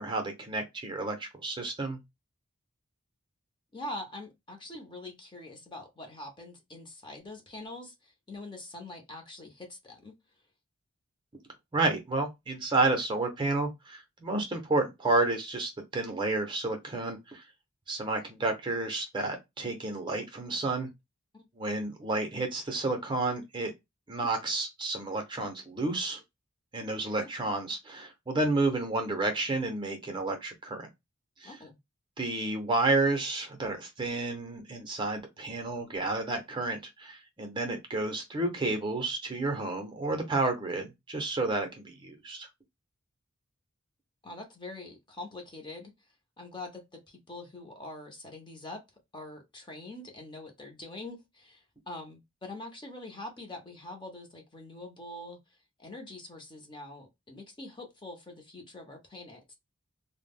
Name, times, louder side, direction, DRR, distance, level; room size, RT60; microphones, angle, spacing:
voice 1, 0.0-2.0 11.7-17.4 17.9-20.9 21.6-23.7 24.1-26.2 26.7-30.9 31.4-31.5 32.2-42.5, right 2 dB, 20° right, 0.6 m, -31 dB
voice 2, 3.7-10.1 21.3-21.5 27.0-27.3 31.4-31.8 44.2-45.9 46.4-48.8 49.1-55.4 55.8-59.5, left 2 dB, 20° left, 0.6 m, -44 dB
2.2 x 2.0 x 3.4 m
head